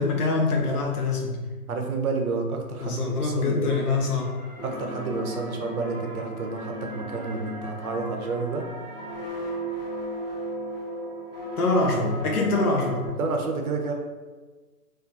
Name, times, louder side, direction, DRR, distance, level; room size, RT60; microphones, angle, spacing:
voice 1, 0.0-1.4 2.8-4.3 11.6-13.1, left 3 dB, 70° left, 1 dB, 0.7 m, -24 dB
voice 2, 1.7-3.7 4.6-8.7 13.2-13.9, right 4 dB, 65° right, 3 dB, 0.5 m, -30 dB
sound 1, 3.4-9.3, right 2 dB, 5° left, 0.8 m, -47 dB
sound 2, 4.6-13.1, equal, 40° left, 0.4 m, -36 dB
2.4 x 2.3 x 2.5 m, 1.3 s
hypercardioid pair, 165°, 47 cm